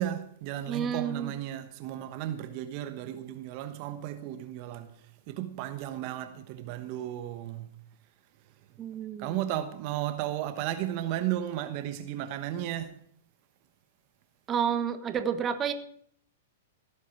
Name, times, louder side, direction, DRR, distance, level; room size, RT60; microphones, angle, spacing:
voice 1, 0.0-4.9 5.3-7.7 9.2-13.0, right 12 dB, 45° right, 1.1 m, -34 dB
voice 2, 0.7-1.3 8.8-9.4 14.5-15.7, right 8 dB, 25° right, 1.2 m, -30 dB
17.0 x 8.3 x 5.9 m
hypercardioid pair, 110°, 0 cm